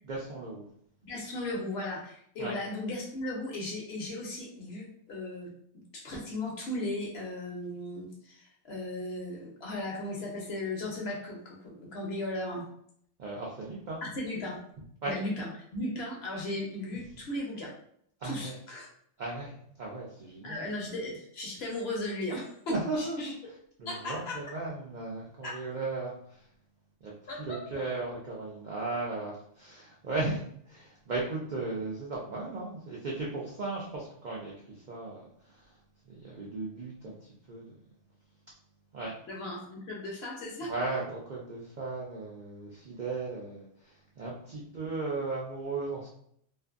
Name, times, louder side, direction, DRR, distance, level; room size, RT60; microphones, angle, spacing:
voice 1, 0.0-0.6 2.4-2.6 13.2-14.0 15.0-15.1 18.2-18.5 19.2-20.6 22.7-23.3 23.8-26.4 27.0-27.1 27.4-34.5 34.9-35.7 36.1-37.2 37.5-37.7 38.9-39.1 40.6-46.1, right 3 dB, 65° right, -4 dB, 0.4 m, -36 dB
voice 2, 1.0-12.7 14.0-14.6 15.0-17.7 18.2-18.9 20.4-23.3 23.9-24.4 25.4-25.6 27.3-27.6 39.3-40.7, left 1 dB, 60° left, -1 dB, 0.8 m, -36 dB
2.5 x 2.5 x 2.4 m, 0.66 s
omnidirectional pair, 1.3 m